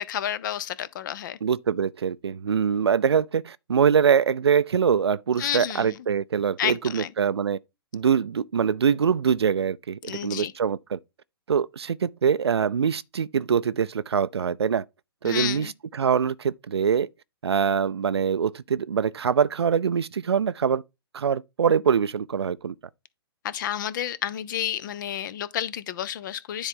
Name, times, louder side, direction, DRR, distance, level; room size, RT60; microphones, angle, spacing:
voice 1, 0.0-1.4 5.4-6.0 6.6-7.1 10.0-10.5 15.2-15.7 23.4-26.7, left 11 dB, 50° left, 0.7 m, -30 dB
voice 2, 1.4-7.6 7.9-11.0 11.5-14.8 15.2-17.1 17.4-20.8 21.1-22.7, right 7 dB, 90° right, 0.4 m, -24 dB
10.0 x 3.9 x 3.7 m
hypercardioid pair, 135°, 13 cm